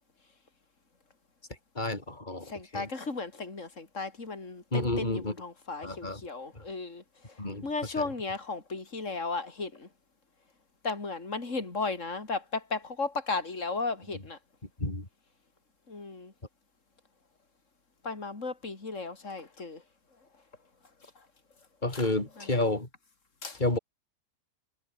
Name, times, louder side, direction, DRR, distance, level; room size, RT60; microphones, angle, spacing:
voice 1, 1.7-2.9 4.7-5.3 5.8-6.2 7.4-7.7 8.0-8.1 14.8-15.1 21.8-22.9 23.6-23.8, left 2 dB, 25° left, 4.9 m, -30 dB
voice 2, 2.5-7.0 7.6-9.9 10.8-14.4 15.9-16.3 18.0-19.8 21.9-22.6 23.4-23.6, left 3 dB, 50° left, 4.2 m, -35 dB
omnidirectional pair, 1.7 m